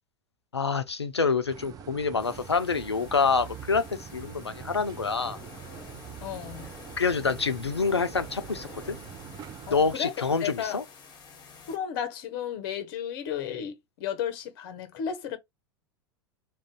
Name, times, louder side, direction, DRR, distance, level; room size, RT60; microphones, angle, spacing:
voice 1, 0.5-5.4 7.0-9.0 9.7-10.8, left 5 dB, 90° left, 0.4 m, -27 dB
sound 1, 1.5-10.0, right 9 dB, 25° right, 0.5 m, -44 dB
sound 2, 2.2-11.8, left 5 dB, 30° left, 1.0 m, -49 dB
voice 2, 6.2-6.7 9.7-10.1 10.4-10.8 11.7-15.4, left 9 dB, 55° left, 0.7 m, -33 dB
2.5 x 2.2 x 3.5 m
figure-of-eight pair, 85°, 13 cm